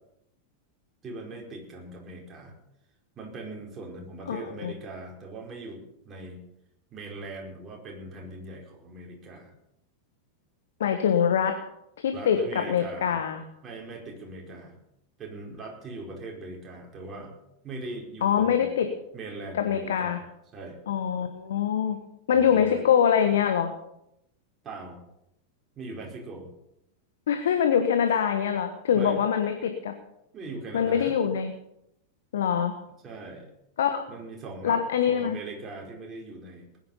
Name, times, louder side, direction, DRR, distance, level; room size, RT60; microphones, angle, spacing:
voice 1, 1.0-2.5 3.2-6.4 6.9-9.5 12.1-13.2 13.6-14.8 15.2-17.4 17.6-18.7 19.1-20.2 20.5-20.8 22.3-22.9 24.6-25.0 25.8-26.5 28.9-29.2 30.3-31.2 33.0-33.5 34.1-36.8, right 2 dB, 25° right, -1 dB, 4.7 m, -40 dB
voice 2, 4.3-4.7 10.8-11.6 12.0-13.4 18.2-18.9 19.5-20.2 20.9-22.0 22.3-23.7 27.3-29.9 30.7-31.5 32.3-32.7 33.8-34.0 34.6-35.4, left 8 dB, 60° left, 7 dB, 1.3 m, -24 dB
20.0 x 10.5 x 5.7 m, 0.81 s
figure-of-eight pair, 90°, 0 cm